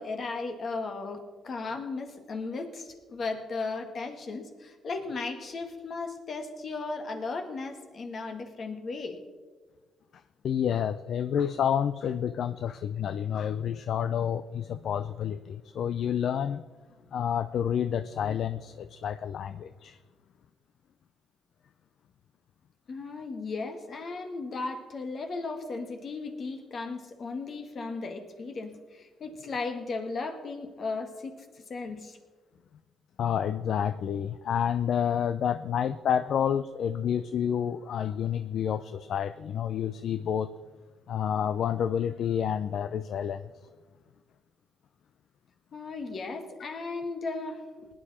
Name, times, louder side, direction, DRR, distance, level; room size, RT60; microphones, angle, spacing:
voice 1, 0.0-9.2 22.9-32.2 45.7-47.9, left 3 dB, 50° left, 6 dB, 2.0 m, -36 dB
voice 2, 10.4-16.6 17.1-20.0 33.2-40.5 41.1-43.4, left 8 dB, 65° left, 12 dB, 0.5 m, -29 dB
19.5 x 10.0 x 4.3 m, 1.4 s
cardioid pair, 90°, 0 cm